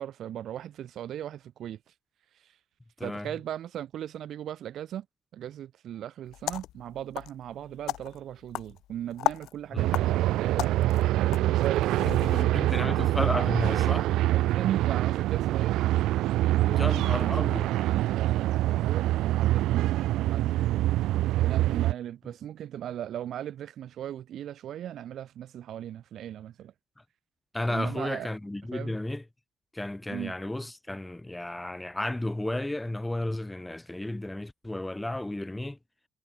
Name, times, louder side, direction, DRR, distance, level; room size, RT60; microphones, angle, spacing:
voice 1, 0.0-1.8 3.0-5.1 5.3-10.8 11.4-12.7 14.3-15.8 16.5-20.5 21.4-26.7 27.7-28.3 28.7-29.0 30.1-30.3, right 11 dB, 70° right, 1.8 m, -38 dB
voice 2, 3.0-3.3 9.7-10.0 12.0-14.1 16.7-17.7 27.5-29.2 29.7-35.8, left 1 dB, 10° left, 4.2 m, -33 dB
sound 1, 6.3-12.4, left 15 dB, 90° left, 1.7 m, -36 dB
sound 2, 9.8-21.9, right 15 dB, 90° right, 0.4 m, -25 dB
cardioid pair, 90°, 0 cm